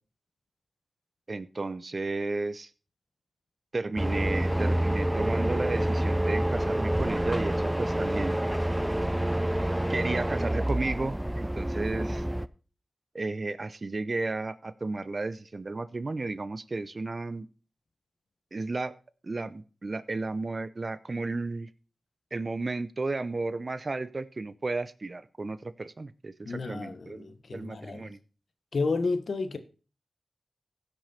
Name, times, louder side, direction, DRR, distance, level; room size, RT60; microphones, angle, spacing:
voice 1, 1.3-2.7 3.7-8.4 9.9-12.2 13.1-17.5 18.5-18.9 19.2-21.7 22.3-27.3 27.5-28.2, right 3 dB, 50° right, 0.7 m, -33 dB
sound 1, 4.0-12.5, right 1 dB, 10° right, 0.5 m, -28 dB
voice 2, 26.4-28.1 28.7-29.6, left 3 dB, 70° left, 1.3 m, -31 dB
16.0 x 6.2 x 4.3 m
cardioid pair, 50°, 0 cm